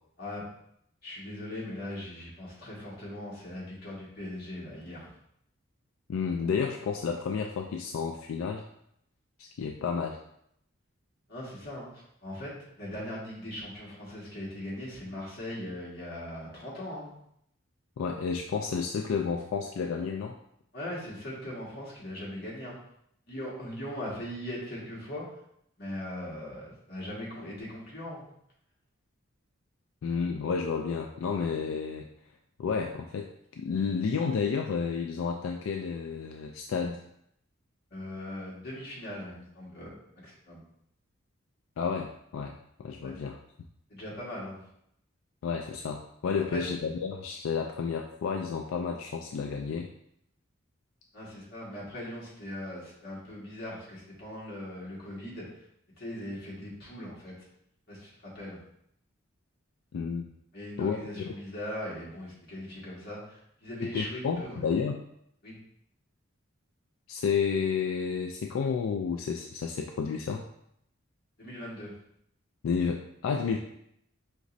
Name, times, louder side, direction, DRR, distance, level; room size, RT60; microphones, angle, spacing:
voice 1, 1.0-5.1 11.3-17.1 20.7-22.8 23.2-25.4 25.8-28.2 37.9-40.6 43.0-43.1 43.9-44.6 46.5-46.7 51.1-55.4 55.9-57.4 57.9-58.6 60.5-64.7 65.4-65.6 71.4-71.9, left 1 dB, 50° left, -6 dB, 1.6 m, -40 dB
voice 2, 6.1-8.6 9.4-10.2 18.0-20.4 30.0-32.1 32.6-37.0 41.8-43.4 45.4-49.9 59.9-60.3 60.8-61.3 63.9-65.0 67.1-70.4 72.6-73.6, left 5 dB, 85° left, 3 dB, 0.3 m, -31 dB
5.0 x 3.0 x 2.6 m, 0.73 s
head